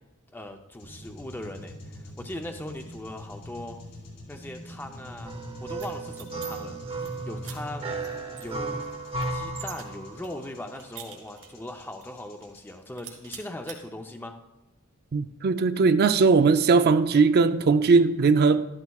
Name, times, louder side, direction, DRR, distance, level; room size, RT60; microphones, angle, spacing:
voice 1, 0.3-3.8 4.3-5.4 5.6-7.9 8.4-8.8 9.3-14.3, left 1 dB, 10° left, 0.5 m, -39 dB
sound 1, 0.8-12.7, equal, 75° left, 4.1 m, -43 dB
sound 2, 5.3-10.5, right 3 dB, 25° right, 0.8 m, -35 dB
sound 3, 5.7-6.5 6.8-7.1 7.4-7.6 8.0-8.1 8.4-9.8 10.2-11.6 12.0-12.1 12.4-12.7 13.0-13.8, right 9 dB, 80° right, 2.6 m, -44 dB
voice 2, 15.1-18.7, right 4 dB, 45° right, 0.4 m, -19 dB
13.0 x 12.5 x 2.3 m
head